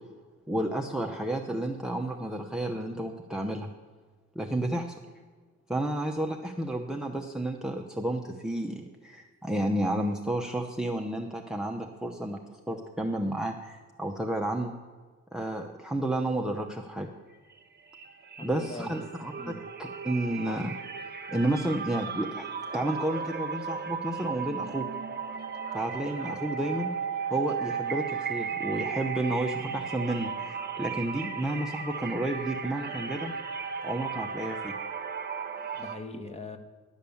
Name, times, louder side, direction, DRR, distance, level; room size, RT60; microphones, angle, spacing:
voice 1, 0.5-3.7 4.3-4.9 5.7-14.7 15.3-17.1 18.4-19.5 19.8-20.7 21.3-22.5 22.7-24.9 25.7-26.9 27.3-33.3 33.8-34.7, right 1 dB, ahead, 4 dB, 0.8 m, -31 dB
sound 1, 17.3-17.6 17.9-36.0, right 6 dB, 35° right, 1.1 m, -35 dB
voice 2, 18.4-19.0 19.4-19.6 35.7-36.6, left 2 dB, 20° left, 7 dB, 1.3 m, -41 dB
11.5 x 6.7 x 7.0 m, 1.4 s
cardioid pair, 90°, 30 cm